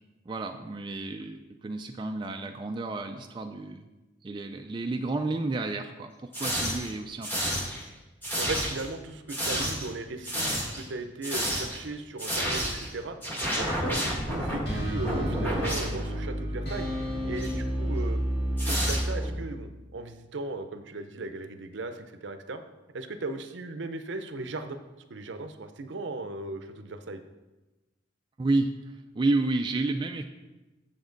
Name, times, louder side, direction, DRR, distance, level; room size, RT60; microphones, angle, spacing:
voice 1, 0.3-3.9 4.2-7.6 28.4-30.2, right 2 dB, 25° right, 5 dB, 0.3 m, -31 dB
sound 1, 6.3-6.9 7.2-7.8 8.2-8.9 9.3-9.9 10.2-10.9 11.2-11.8 12.2-12.9 13.2-16.3 17.3-17.5 18.6-19.4, equal, 10° left, 1.4 m, -30 dB
voice 2, 8.3-13.2 13.6-16.9 17.2-18.2 18.7-22.6 22.9-24.8 25.1-27.2, right 2 dB, 65° right, 9 dB, 0.6 m, -37 dB
They Are Coming, 14.2-19.3, equal, 55° left, 2.0 m, -31 dB
7.2 x 7.2 x 3.9 m, 1.1 s
head